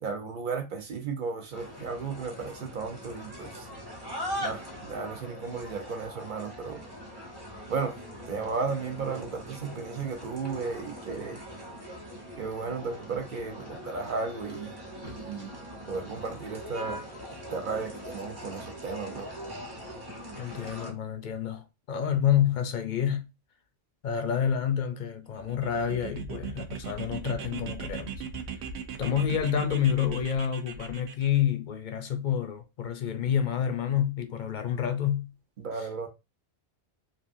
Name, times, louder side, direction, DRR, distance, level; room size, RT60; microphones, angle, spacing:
voice 1, 0.0-3.7 4.4-6.8 7.7-7.9 8.3-11.4 12.4-14.7 15.2-15.6 15.9-17.0 17.5-19.3 35.6-36.1, right 5 dB, 55° right, 0.8 m, -34 dB
sound 1, 1.5-20.9, equal, 25° right, 1.0 m, -41 dB
voice 2, 20.3-23.3 24.0-28.2 29.0-35.3, left 9 dB, 55° left, 0.6 m, -28 dB
sound 2, 25.3-31.4, right 6 dB, 80° right, 0.9 m, -39 dB
3.3 x 2.5 x 2.5 m
omnidirectional pair, 1.1 m